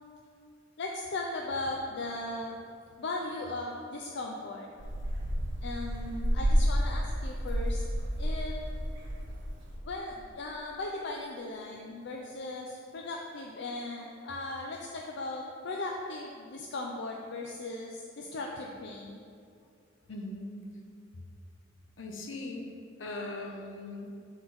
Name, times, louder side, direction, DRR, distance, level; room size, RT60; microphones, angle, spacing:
voice 1, 0.8-2.6 3.0-4.7 5.6-7.8 8.2-8.5 9.9-19.2, left 2 dB, 60° left, 0 dB, 0.5 m, -37 dB
sound 1, 4.8-9.7, equal, 65° right, 1.1 m, -30 dB
voice 2, 20.1-20.6 22.0-22.7 23.0-24.1, left 2 dB, 80° left, 1 dB, 0.9 m, -39 dB
7.6 x 3.9 x 4.2 m, 2.4 s
head